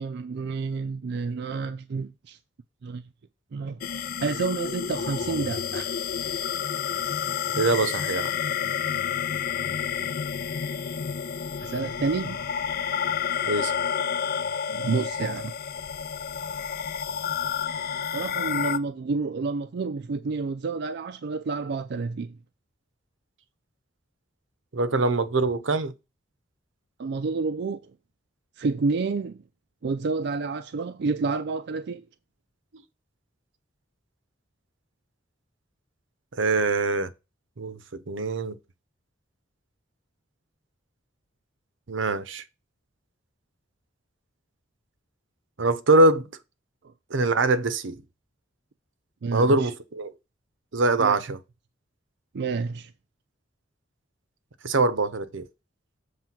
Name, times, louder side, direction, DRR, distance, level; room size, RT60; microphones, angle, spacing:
voice 1, 0.0-2.4 2.8-3.0 3.5-5.9 11.6-12.5 14.7-15.5 18.1-22.4 27.0-27.9 28.6-29.4 29.8-32.0 49.2-49.7 51.0-51.2 52.3-52.9, right 4 dB, 60° right, 0.4 m, -29 dB
sound 1, 3.8-18.8, left 8 dB, 55° left, 0.5 m, -30 dB
voice 2, 7.6-8.3 13.5-13.7 24.7-25.9 36.4-37.1 37.6-38.6 41.9-42.4 45.6-46.3 47.1-48.0 49.3-50.1 50.7-51.4 54.6-55.4, right 2 dB, 80° right, 0.8 m, -23 dB
7.5 x 3.3 x 5.8 m
head